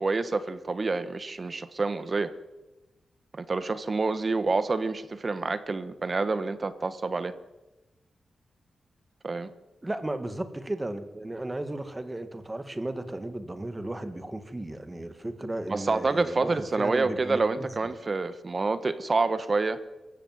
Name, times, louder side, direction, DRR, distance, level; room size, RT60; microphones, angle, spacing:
voice 1, 0.0-2.3 3.3-7.3 9.2-9.5 15.7-19.8, right 3 dB, 30° right, 13 dB, 1.2 m, -28 dB
voice 2, 9.8-17.7, right 1 dB, 15° right, 10 dB, 2.0 m, -35 dB
26.0 x 15.0 x 9.5 m, 1.1 s
wide cardioid pair, 170°, 0 cm